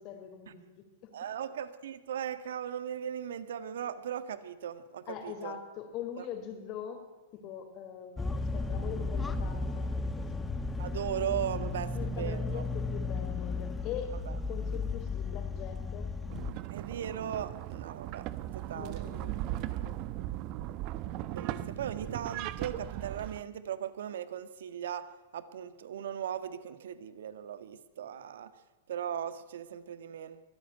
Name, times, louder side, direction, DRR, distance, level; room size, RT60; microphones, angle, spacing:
voice 1, 0.0-1.1 5.1-10.2 11.9-16.1 18.7-20.0, left 8 dB, 45° left, 5 dB, 3.9 m, -43 dB
voice 2, 1.1-5.6 6.2-6.3 10.8-12.6 16.7-18.3 18.5-19.0 21.3-25.0 25.3-28.5 28.9-30.4, right 9 dB, 75° right, 13 dB, 1.7 m, -38 dB
sound 1, 8.2-16.5, left 3 dB, 10° left, 1.9 m, -34 dB
sound 2, 16.3-23.4, right 14 dB, 45° right, 1.1 m, -38 dB
23.0 x 14.5 x 9.3 m, 1.3 s
hypercardioid pair, 110°, 0 cm